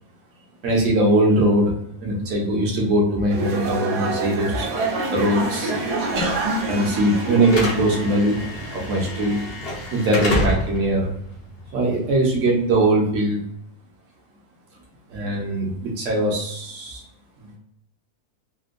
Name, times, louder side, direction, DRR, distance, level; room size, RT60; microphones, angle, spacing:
voice 1, 0.6-1.7 2.0-5.7 6.1-6.4 6.7-8.4 8.7-9.4 9.9-11.1 11.7-13.4 15.1-17.0 17.4-17.6, right 1 dB, 60° right, -1 dB, 1.1 m, -21 dB
sound 1, 3.3-9.5, right 2 dB, 85° right, 1.2 m, -27 dB
Slam / Alarm, 4.7-12.8, left 1 dB, 50° left, 0.8 m, -30 dB
3.5 x 2.2 x 2.5 m, 0.73 s
omnidirectional pair, 1.7 m